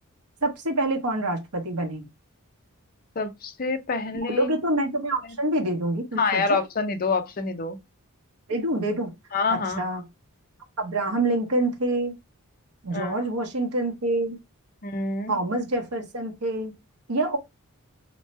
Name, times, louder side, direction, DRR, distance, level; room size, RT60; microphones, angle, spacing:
voice 1, 0.4-2.0 4.4-6.6 8.5-9.1 9.5-10.0 10.8-12.1 12.8-14.4 15.3-16.7 17.1-17.4, right 1 dB, 80° right, 0.9 m, -26 dB
voice 2, 3.2-4.5 5.2-5.4 6.2-7.8 9.3-9.8 12.9-13.2 14.8-15.4, left 4 dB, 40° left, 0.5 m, -27 dB
3.0 x 2.1 x 4.1 m
head